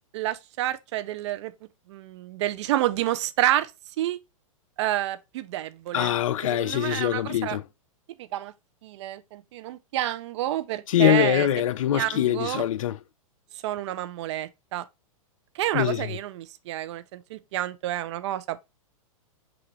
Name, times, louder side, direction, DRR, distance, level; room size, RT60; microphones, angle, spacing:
voice 1, 0.1-1.5 1.9-3.7 4.0-4.2 4.8-6.1 6.5-7.6 8.2-8.5 8.8-11.5 11.9-12.6 13.6-14.8 15.5-18.6, right 14 dB, 55° right, 0.5 m, -29 dB
voice 2, 5.9-7.6 10.9-13.0 15.7-16.2, left 11 dB, 70° left, 0.4 m, -23 dB
5.9 x 2.5 x 3.1 m
hypercardioid pair, 115°, 18 cm